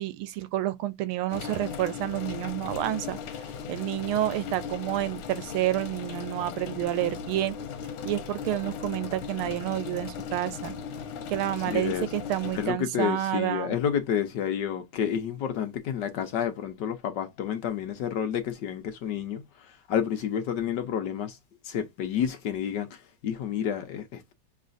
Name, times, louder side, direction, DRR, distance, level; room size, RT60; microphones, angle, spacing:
voice 1, 0.0-3.2 3.7-7.5 8.1-10.8 11.3-13.8, right 14 dB, 85° right, 1.5 m, -29 dB
sound 1, 1.3-12.7, left 7 dB, 85° left, 1.6 m, -37 dB
voice 2, 11.7-12.1 12.5-21.4 21.6-24.3, left 8 dB, 65° left, 1.3 m, -30 dB
6.6 x 3.2 x 2.6 m
omnidirectional pair, 2.3 m